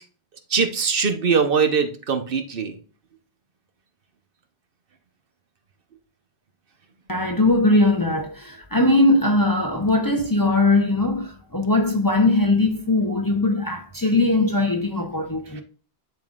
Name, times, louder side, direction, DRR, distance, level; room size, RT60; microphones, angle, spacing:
voice 1, 0.5-2.7, right 5 dB, 65° right, 1.1 m, -21 dB
voice 2, 7.1-15.6, left 2 dB, 25° left, 0.6 m, -20 dB
10.5 x 3.7 x 2.4 m
omnidirectional pair, 1.0 m